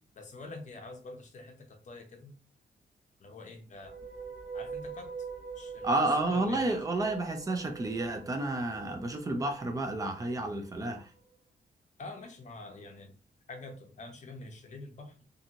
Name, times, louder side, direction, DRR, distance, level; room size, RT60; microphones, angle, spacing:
voice 1, 0.2-2.3 3.2-3.9 4.5-5.3 5.5-6.8 12.0-13.1 13.5-15.2, left 2 dB, 45° left, 4 dB, 0.6 m, -46 dB
sound 1, 3.7-11.0, right 5 dB, 35° right, 0.9 m, -44 dB
voice 2, 5.8-11.1, right 2 dB, 20° right, 4 dB, 0.4 m, -31 dB
2.7 x 2.5 x 2.7 m, 0.38 s
wide cardioid pair, 170°, 18 cm